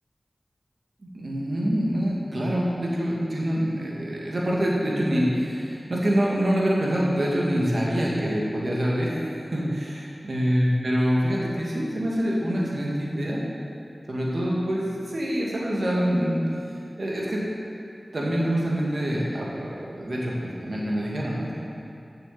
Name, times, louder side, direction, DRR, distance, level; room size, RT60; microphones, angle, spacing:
voice 1, 1.1-13.4 14.1-16.4 17.0-17.4 18.1-21.7, equal, 70° right, -4 dB, 2.0 m, -25 dB
7.9 x 6.8 x 7.6 m, 2.6 s
wide cardioid pair, 60°, 0 cm